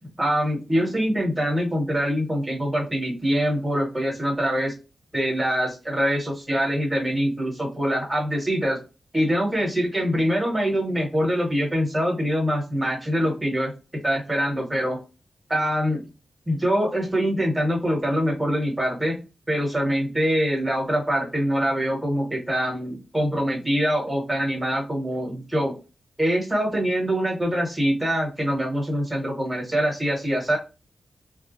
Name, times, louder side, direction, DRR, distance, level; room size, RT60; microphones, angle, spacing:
voice 1, 0.2-4.7 5.1-8.8 9.1-13.7 14.0-15.0 15.5-16.1 16.5-19.2 19.5-25.8 26.2-30.6, equal, 10° right, -2 dB, 1.3 m, -24 dB
3.4 x 2.4 x 2.5 m, 0.30 s
wide cardioid pair, 170°, 0 cm